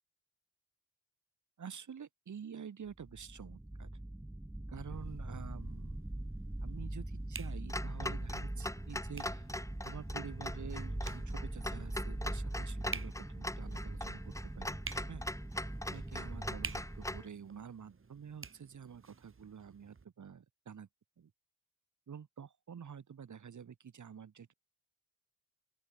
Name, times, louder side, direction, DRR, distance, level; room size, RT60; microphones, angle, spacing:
voice 1, 1.6-3.9 4.7-6.0 6.6-9.5 9.8-14.8 15.1-15.2 15.9-20.9 21.2-21.3 22.1-24.5, right 7 dB, 55° right, 4.9 m, -49 dB
sound 1, 2.9-17.2, right 1 dB, 5° right, 1.5 m, -42 dB
sound 2, 4.9-20.0, right 4 dB, 35° right, 3.1 m, -51 dB
Clock, 7.7-17.3, left 1 dB, 10° left, 1.8 m, -42 dB
open air
hypercardioid pair, 40°, 36 cm